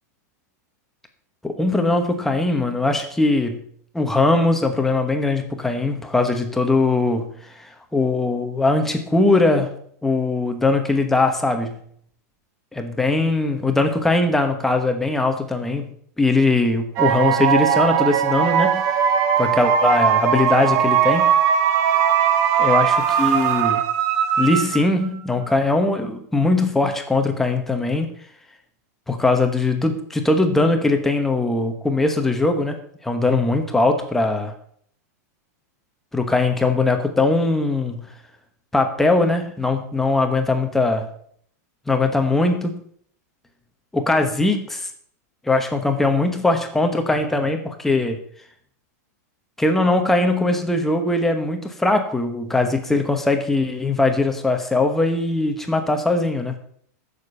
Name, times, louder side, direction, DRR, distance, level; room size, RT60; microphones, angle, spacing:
voice 1, 1.4-3.6 3.9-7.3 7.9-9.7 10.0-11.8 12.7-15.9 16.2-18.9 19.4-21.3 22.6-23.8 24.4-28.1 29.1-34.5 36.1-38.1 38.7-41.1 41.9-42.8 43.9-44.9 45.5-48.2 49.6-56.5, left 2 dB, 5° left, 5 dB, 1.2 m, -20 dB
sound 1, 17.0-25.1, right 8 dB, 30° right, 0.9 m, -19 dB
14.5 x 6.8 x 5.5 m, 0.63 s
supercardioid pair, 170°, 9 cm